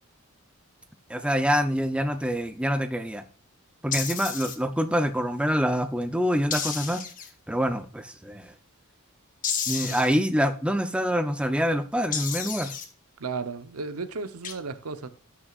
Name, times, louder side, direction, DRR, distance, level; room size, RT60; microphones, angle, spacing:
voice 1, 1.1-3.2 3.8-7.0 7.5-8.5 9.7-12.7, equal, 5° right, 0.6 m, -26 dB
sound 1, 3.9-4.5 6.5-7.3 9.4-10.1 12.1-12.8 14.4-14.5, left 7 dB, 40° left, 1.4 m, -31 dB
voice 2, 9.8-10.1 13.2-15.1, right 4 dB, 85° right, 0.9 m, -34 dB
18.5 x 6.3 x 2.5 m
head